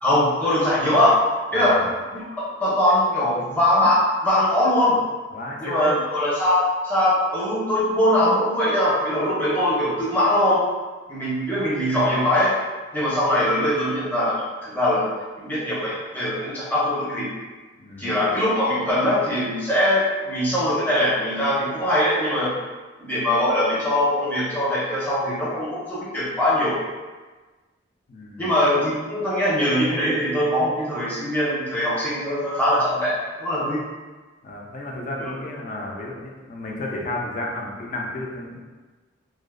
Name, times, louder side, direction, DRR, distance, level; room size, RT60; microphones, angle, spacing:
voice 1, 0.0-1.2 1.5-1.8 2.6-5.0 5.6-10.6 11.1-12.5 12.9-15.1 15.4-17.3 18.0-22.5 23.0-26.8 28.4-33.8, left 1 dB, 10° left, -9 dB, 0.7 m, -21 dB
voice 2, 1.5-1.9 5.3-5.9 17.8-18.2 28.1-28.5 34.4-38.6, left 1 dB, 40° left, -1 dB, 0.4 m, -31 dB
2.6 x 2.0 x 2.4 m, 1.3 s
head